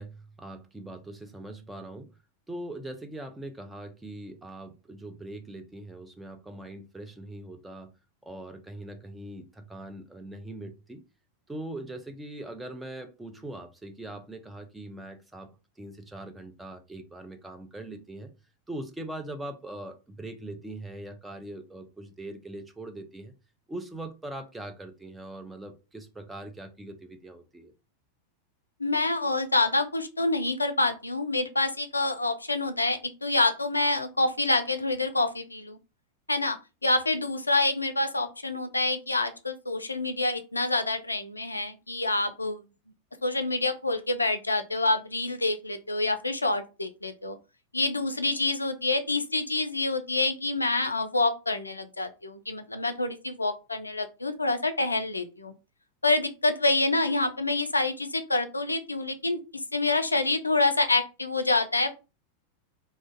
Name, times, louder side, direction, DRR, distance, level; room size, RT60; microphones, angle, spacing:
voice 1, 0.0-2.1 2.5-7.9 8.2-11.0 11.5-15.5 15.8-18.3 18.7-23.3 23.7-27.7, right 1 dB, 5° right, 0.5 m, -41 dB
voice 2, 28.8-35.8 36.3-42.6 43.2-47.4 47.7-55.5 56.0-61.9, left 2 dB, 80° left, 0.3 m, -27 dB
2.4 x 2.0 x 3.7 m
figure-of-eight pair, 90°, 0 cm